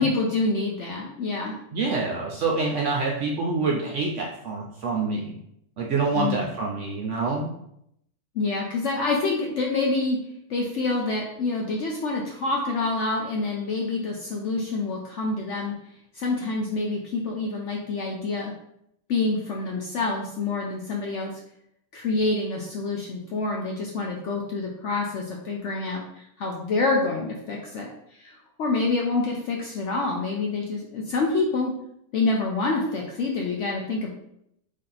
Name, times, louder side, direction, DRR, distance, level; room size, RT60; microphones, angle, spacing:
voice 1, 0.0-1.6 6.1-6.4 8.4-10.2 10.5-15.7 16.1-18.5 19.1-21.3 21.9-27.9 28.2-31.7 32.1-34.1, left 3 dB, 65° left, -1 dB, 0.7 m, -27 dB
voice 2, 1.7-5.3 5.8-7.5, right 3 dB, 65° right, -1 dB, 0.7 m, -26 dB
3.6 x 2.7 x 3.8 m, 0.76 s
omnidirectional pair, 1.7 m